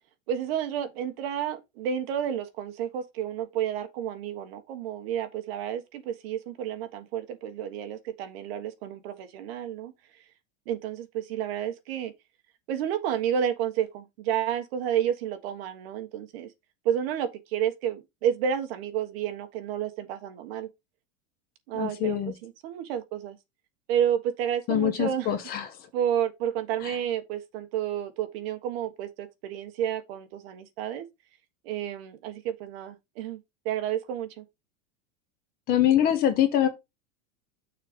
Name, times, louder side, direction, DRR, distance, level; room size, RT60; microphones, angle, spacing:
voice 1, 0.3-9.9 10.7-12.1 12.7-16.5 16.8-20.7 21.7-22.2 22.4-23.4 23.9-25.3 25.9-31.0 31.6-33.4 33.6-34.4, right 9 dB, 50° right, 1.3 m, -30 dB
voice 2, 21.7-22.3 24.7-25.8 26.8-27.0 35.7-36.7, left 10 dB, 25° left, 0.8 m, -24 dB
6.6 x 3.9 x 5.0 m
supercardioid pair, 175°, 38 cm